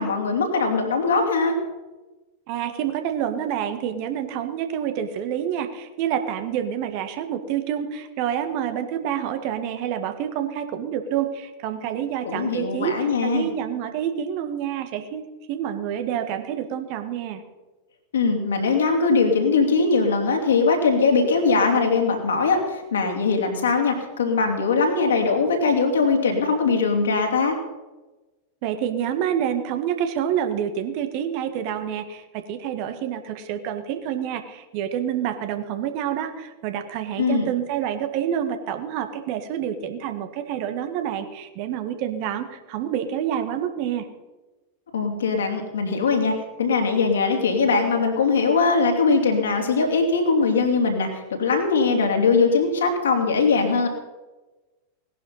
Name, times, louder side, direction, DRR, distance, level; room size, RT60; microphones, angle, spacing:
voice 1, 0.0-1.5 12.2-13.5 18.1-27.6 37.2-37.5 44.9-51.1 51.4-53.9, left 4 dB, 65° left, 3 dB, 2.9 m, -21 dB
voice 2, 2.5-17.4 28.6-44.1, right 9 dB, 45° right, 8 dB, 1.6 m, -28 dB
18.0 x 11.0 x 5.6 m, 1.2 s
figure-of-eight pair, 90°, 0 cm